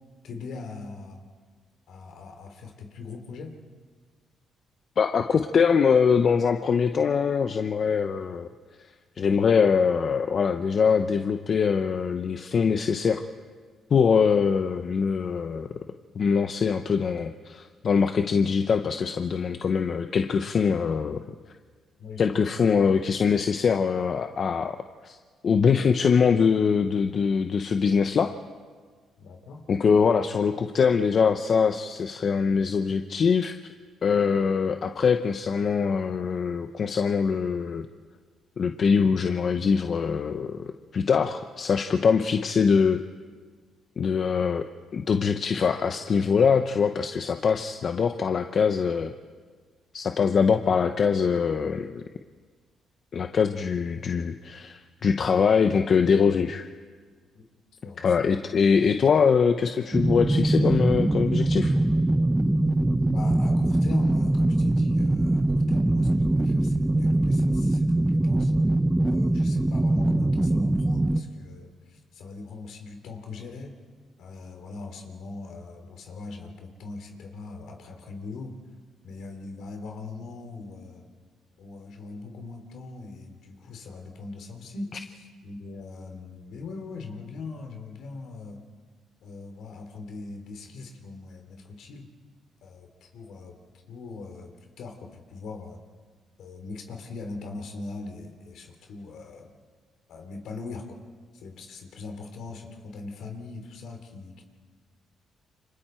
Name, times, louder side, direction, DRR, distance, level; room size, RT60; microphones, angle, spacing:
voice 1, 0.2-1.3 1.9-3.6 22.0-22.4 29.2-29.6 57.3-57.4 57.8-58.1 63.1-68.5 69.0-73.8 74.2-78.6 79.0-81.1 81.6-88.6 89.2-92.1 92.6-93.5 93.9-94.5 94.8-95.8 96.4-99.6 100.1-101.0 101.3-104.4, left 3 dB, 75° left, 4 dB, 3.2 m, -40 dB
voice 2, 5.0-8.5 9.2-13.2 13.9-15.8 16.1-21.2 22.2-24.8 25.0-25.2 25.4-28.3 29.7-33.7 34.0-37.9 38.6-43.0 44.0-44.6 44.9-49.1 49.9-52.0 53.1-56.7 58.0-61.7, left 6 dB, 50° left, 7 dB, 0.9 m, -23 dB
sound 1, 59.9-71.2, right 1 dB, 10° right, 0.8 m, -22 dB
29.0 x 26.0 x 4.5 m, 1.6 s
cardioid pair, 90°, 0 cm